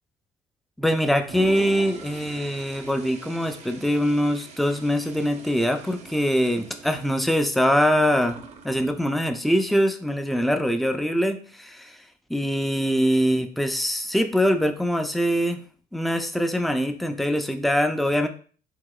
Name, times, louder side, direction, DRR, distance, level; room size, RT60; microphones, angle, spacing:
voice 1, 0.8-8.4 8.6-12.0 12.3-15.6 15.9-18.3, equal, ahead, 6 dB, 0.5 m, -23 dB
Toilet flush, 1.1-9.0, right 4 dB, 40° right, 0.7 m, -43 dB
4.8 x 3.9 x 2.3 m, 0.42 s
cardioid pair, 110°, 17 cm